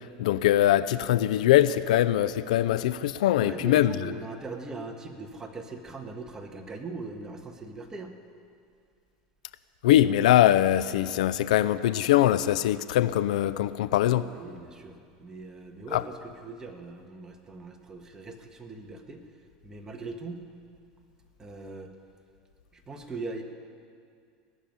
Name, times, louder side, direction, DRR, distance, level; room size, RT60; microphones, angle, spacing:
voice 1, 0.2-4.1 9.8-14.3 15.9-16.0, left 13 dB, 85° left, 16 dB, 0.5 m, -22 dB
voice 2, 3.4-8.1 14.3-19.2 19.6-20.4 21.4-21.9 22.7-23.4, right 3 dB, 15° right, 3 dB, 1.5 m, -40 dB
18.5 x 7.1 x 9.4 m, 2.3 s
supercardioid pair, 120°, 4 cm